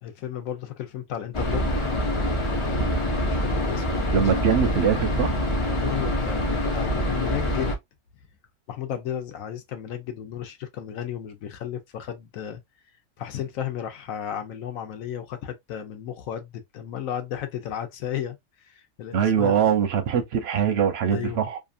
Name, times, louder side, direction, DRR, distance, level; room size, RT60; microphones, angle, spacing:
voice 1, 0.0-1.7 2.8-4.2 5.8-7.8 8.7-12.6 13.2-18.4 18.6-19.6 21.1-21.5, left 10 dB, 70° left, 1.0 m, -34 dB
sound 1, 1.3-7.8, left 1 dB, 55° left, 0.3 m, -25 dB
voice 2, 4.1-5.3 19.1-21.6, right 8 dB, 60° right, 0.7 m, -22 dB
2.8 x 2.4 x 2.4 m
omnidirectional pair, 1.5 m